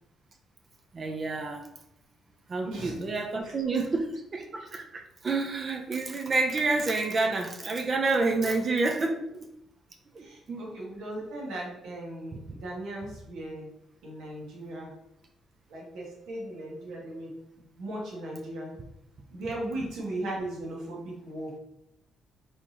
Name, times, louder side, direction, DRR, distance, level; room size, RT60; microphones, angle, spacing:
voice 1, 0.9-1.6 2.5-9.1 10.1-10.7, right 3 dB, 40° right, 3 dB, 0.6 m, -29 dB
voice 2, 3.4-3.8 8.4-8.5 9.3-9.4 10.2-13.7 14.0-14.9 15.7-18.8 19.3-21.5, right 1 dB, 85° right, -3 dB, 1.5 m, -38 dB
4.3 x 3.5 x 2.9 m, 0.83 s
cardioid pair, 90°, 0 cm